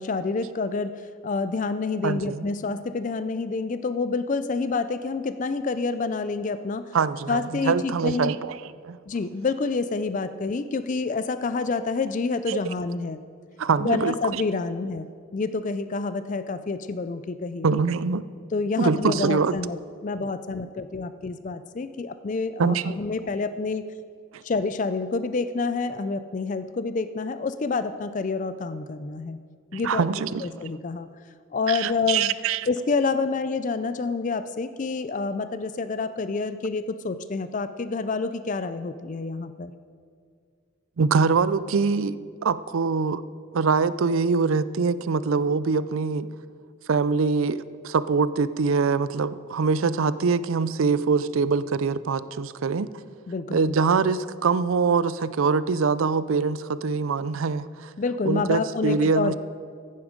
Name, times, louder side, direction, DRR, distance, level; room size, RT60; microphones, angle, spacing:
voice 1, 0.0-6.8 7.3-8.3 9.1-13.2 13.8-17.9 18.5-19.8 20.0-23.9 24.4-29.4 29.7-30.0 30.4-31.1 31.5-32.3 32.7-39.7 53.3-53.7 58.0-59.3, left 4 dB, 35° left, 12 dB, 0.4 m, -28 dB
voice 2, 2.0-2.5 6.9-9.0 12.5-12.6 13.6-14.4 17.6-18.2 18.8-19.5 22.6-22.9 24.3-24.4 29.7-30.4 31.7-32.7 41.0-43.2 43.5-46.3 46.9-52.9 53.5-57.9 58.3-59.3, right 5 dB, 75° right, 16 dB, 0.4 m, -24 dB
15.0 x 9.6 x 5.1 m, 2.1 s
head